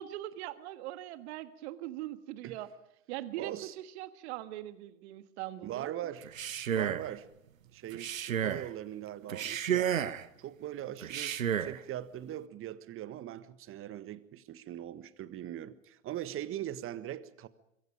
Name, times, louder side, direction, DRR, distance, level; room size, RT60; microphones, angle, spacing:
voice 1, 0.0-2.7 3.1-5.9, right 14 dB, 55° right, 13 dB, 1.7 m, -41 dB
voice 2, 3.3-3.7 5.6-6.3 6.7-7.3 7.7-17.5, right 12 dB, 35° right, 15 dB, 1.6 m, -41 dB
Male speech man speaking, 6.2-7.1 7.9-8.7 9.3-10.3 11.0-11.8, right 9 dB, 80° right, 1.2 m, -32 dB
26.0 x 23.0 x 5.1 m, 0.79 s
figure-of-eight pair, 90°, 39 cm